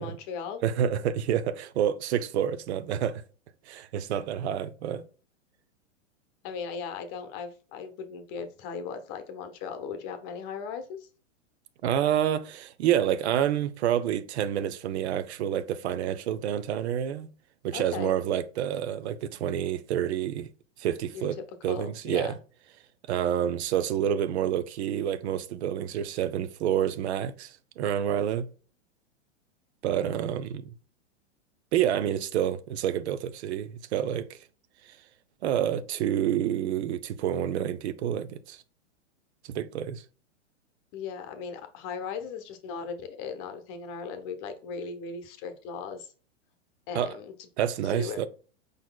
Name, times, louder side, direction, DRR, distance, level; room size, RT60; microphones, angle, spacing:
voice 1, 0.0-0.6 6.4-11.1 17.7-18.1 21.1-21.3 21.7-22.4 40.9-46.1 46.9-47.3 47.9-48.3, left 6 dB, 40° left, 0.8 m, -37 dB
voice 2, 0.6-3.2 3.7-5.0 11.8-17.3 17.6-20.5 20.8-21.4 21.6-22.3 23.1-28.5 29.8-30.7 31.7-34.4 34.9-35.0 35.4-38.6 39.5-40.0 46.9-47.1 47.6-48.3, right 10 dB, 65° right, 0.6 m, -28 dB
4.9 x 4.0 x 2.2 m
hypercardioid pair, 125°, 36 cm